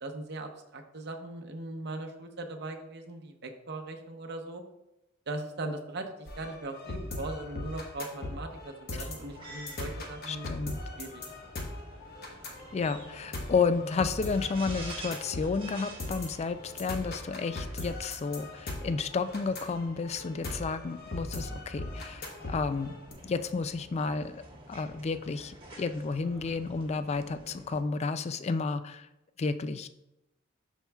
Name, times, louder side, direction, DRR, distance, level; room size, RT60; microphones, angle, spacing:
voice 1, 0.0-4.6 5.3-10.6 11.0-11.2, right 2 dB, 55° right, 4 dB, 0.8 m, -39 dB
sound 1, 6.3-23.1, left 2 dB, 50° left, 1.1 m, -39 dB
sound 2, 9.2-27.8, right 2 dB, 25° right, 1.3 m, -49 dB
voice 2, 10.3-10.8 12.7-23.0 23.2-24.4 24.7-29.1 29.4-29.9, left 4 dB, 30° left, 11 dB, 0.3 m, -31 dB
12.5 x 4.5 x 2.3 m, 0.91 s
head